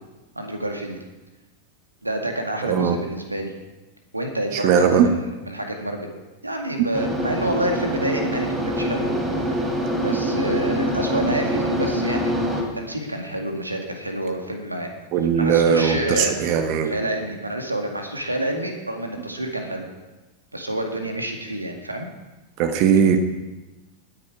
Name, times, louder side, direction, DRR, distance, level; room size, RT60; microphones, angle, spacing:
voice 1, 0.4-1.0 2.0-3.5 4.1-6.1 6.4-9.1 10.0-12.5 12.7-14.9 15.4-16.5 16.8-19.9 20.5-22.1, right 1 dB, 85° right, 3 dB, 2.0 m, -28 dB
voice 2, 2.6-3.0 4.5-5.1 15.1-16.9 22.6-23.2, right 7 dB, 45° right, 7 dB, 1.2 m, -19 dB
sound 1, 6.9-12.6, equal, 15° right, 3.1 m, -24 dB
19.5 x 9.6 x 4.8 m, 1.1 s
figure-of-eight pair, 90°, 0 cm